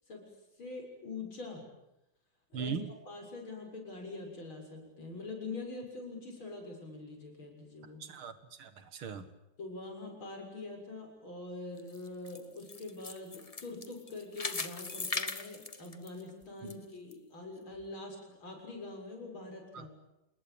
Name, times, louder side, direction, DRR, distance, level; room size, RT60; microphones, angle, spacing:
voice 1, 0.6-1.6 2.5-2.8 3.1-8.0 9.6-19.9, left 3 dB, 80° left, 2 dB, 7.7 m, -44 dB
voice 2, 2.5-2.9 8.0-9.3 16.6-16.8 19.7-19.9, right 6 dB, 80° right, 11 dB, 2.6 m, -40 dB
sound 1, 11.8-16.7 17.1-17.2 17.8-17.9, left 4 dB, 25° left, 0.8 m, -39 dB
28.5 x 20.5 x 8.8 m, 0.91 s
omnidirectional pair, 2.2 m